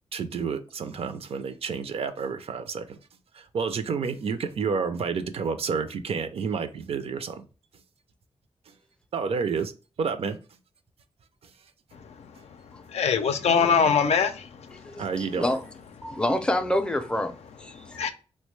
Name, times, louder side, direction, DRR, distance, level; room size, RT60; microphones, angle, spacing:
voice 1, 0.1-3.0 3.3-7.5 9.1-9.7 10.0-10.4 15.0-15.5, right 5 dB, 65° right, 0.4 m, -30 dB
voice 2, 12.9-14.4 18.0-18.1, left 6 dB, 90° left, 0.4 m, -22 dB
voice 3, 14.7-15.6 16.0-18.1, left 1 dB, 10° left, 0.4 m, -28 dB
3.6 x 2.1 x 3.1 m
wide cardioid pair, 105°, 11 cm